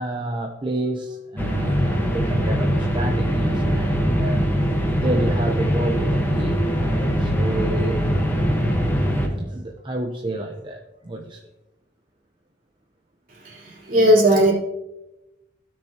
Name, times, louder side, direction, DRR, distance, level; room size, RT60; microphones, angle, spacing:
voice 1, 0.0-4.5 5.0-8.1 8.8-11.4 13.8-13.9, right 1 dB, 25° right, 1 dB, 0.7 m, -30 dB
sound 1, 1.4-9.3, equal, 10° left, 1.2 m, -22 dB
voice 2, 13.4-14.5, equal, 45° right, -5 dB, 3.6 m, -17 dB
16.5 x 6.4 x 2.9 m, 0.98 s
head